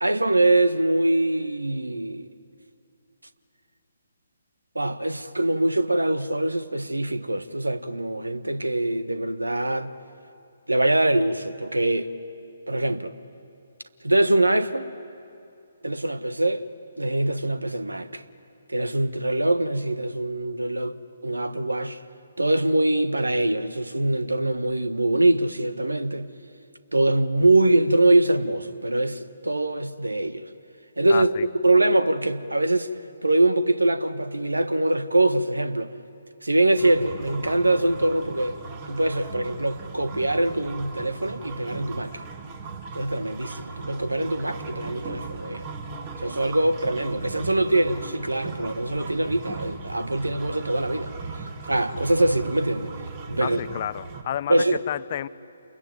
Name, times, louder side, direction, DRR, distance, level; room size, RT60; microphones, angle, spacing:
voice 1, 0.0-2.3 4.7-9.9 10.7-12.1 12.7-13.1 14.0-14.9 15.8-16.7 17.0-18.2 18.7-22.0 22.4-26.3 26.9-30.5 31.0-31.4 31.6-32.9 33.2-35.9 36.4-38.6 38.9-42.2 42.9-45.6 46.2-51.1 51.7-52.9 53.3-53.6 54.5-54.8, right 2 dB, 80° right, 1.4 m, -23 dB
voice 2, 31.1-31.5 53.4-55.3, left 11 dB, 35° left, 0.6 m, -31 dB
sound 1, 36.8-54.2, right 4 dB, 30° right, 2.1 m, -38 dB
28.5 x 22.0 x 9.3 m
figure-of-eight pair, 135°, 0 cm